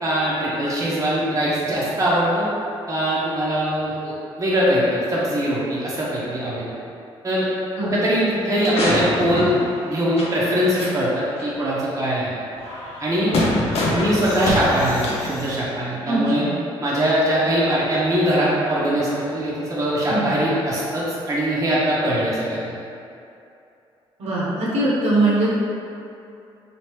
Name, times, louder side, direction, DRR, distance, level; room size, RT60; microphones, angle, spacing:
voice 1, 0.0-2.5 2.9-6.7 7.2-7.5 7.8-9.5 9.9-12.4 13.0-13.4 13.9-16.5 16.8-22.7, equal, 30° right, -7 dB, 0.9 m, -22 dB
sound 1, 8.5-10.5 10.8-10.9 11.4-11.5 12.6-15.6, left 1 dB, 70° left, 0.6 m, -25 dB
voice 2, 16.0-16.5 20.1-20.3 24.2-25.5, right 2 dB, 75° right, -7 dB, 0.9 m, -21 dB
3.0 x 2.8 x 3.1 m, 2.7 s
cardioid pair, 80°, 11 cm